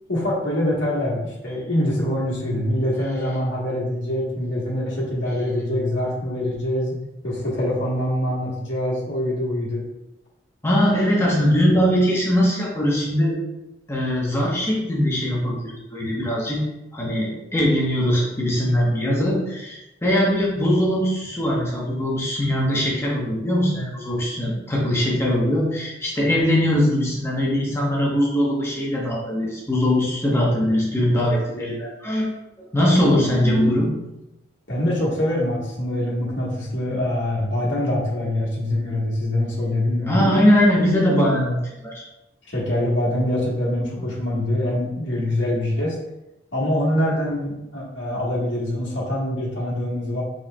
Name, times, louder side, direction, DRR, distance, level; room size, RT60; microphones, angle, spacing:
voice 1, 0.1-7.0 7.2-9.8 33.4-33.5 34.7-40.4 42.5-46.0 46.5-50.2, left 1 dB, 85° left, -5 dB, 1.2 m, -24 dB
voice 2, 10.6-13.4 13.9-16.6 16.9-32.3 32.7-33.9 40.1-42.0 44.0-44.1, equal, 15° left, -4 dB, 0.9 m, -21 dB
5.2 x 4.3 x 2.2 m, 0.92 s
head